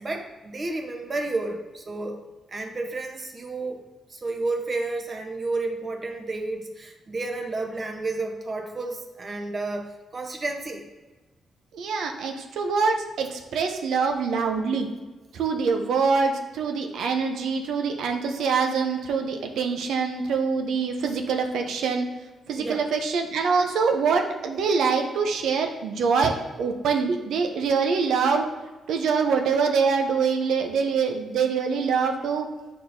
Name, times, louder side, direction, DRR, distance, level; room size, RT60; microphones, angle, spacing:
voice 1, 0.0-2.2 2.5-3.8 4.1-10.8 22.6-22.8, right 2 dB, 35° right, 2 dB, 0.9 m, -31 dB
voice 2, 11.7-14.9 15.3-22.1 22.5-28.4 28.9-32.5, right 5 dB, 85° right, 4 dB, 0.6 m, -24 dB
8.2 x 4.3 x 2.6 m, 1.2 s
cardioid pair, 100°, 0 cm